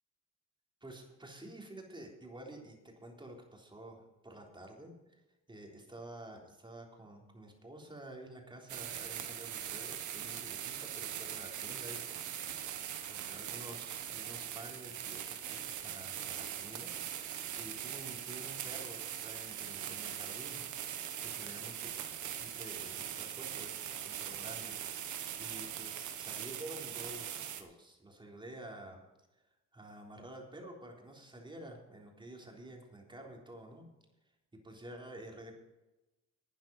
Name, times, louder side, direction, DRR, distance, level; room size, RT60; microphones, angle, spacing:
voice 1, 0.8-5.2 5.5-12.8 13.1-17.0 17.3-20.7 21.2-21.9 22.2-24.8 25.4-29.0 29.7-33.9 34.5-35.5, right 1 dB, 15° right, 0 dB, 3.7 m, -50 dB
sound 1, 8.7-27.6, right 10 dB, 75° right, 1.6 m, -41 dB
12.0 x 9.4 x 5.4 m, 1.0 s
cardioid pair, 90°, 30 cm